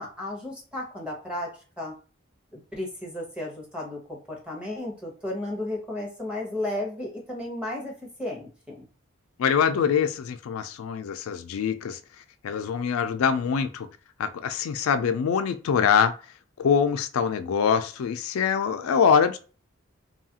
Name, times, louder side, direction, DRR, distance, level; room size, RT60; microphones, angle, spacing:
voice 1, 0.0-1.5 1.8-1.9 2.5-7.9 8.2-8.8, left 1 dB, 5° right, -3 dB, 0.8 m, -34 dB
voice 2, 9.4-12.0 12.4-13.9 14.2-16.1 16.6-19.4, left 7 dB, 85° left, 9 dB, 0.3 m, -24 dB
2.7 x 2.4 x 2.7 m, 0.36 s
head